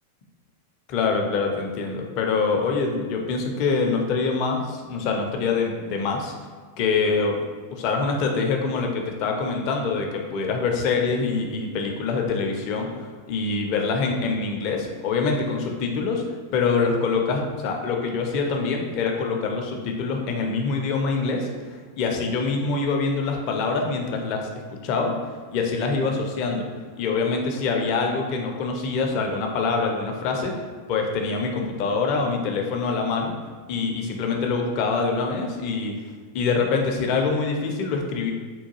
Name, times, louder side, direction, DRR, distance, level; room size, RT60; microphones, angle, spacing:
voice 1, 0.9-6.3 6.8-7.4 7.7-16.2 16.5-21.5 22.0-25.2 25.5-26.7 27.0-30.5 30.9-33.4 33.7-35.9 36.3-38.3, left 4 dB, 45° left, 2 dB, 0.4 m, -25 dB
3.6 x 2.2 x 2.9 m, 1.5 s
figure-of-eight pair, 90°, 0 cm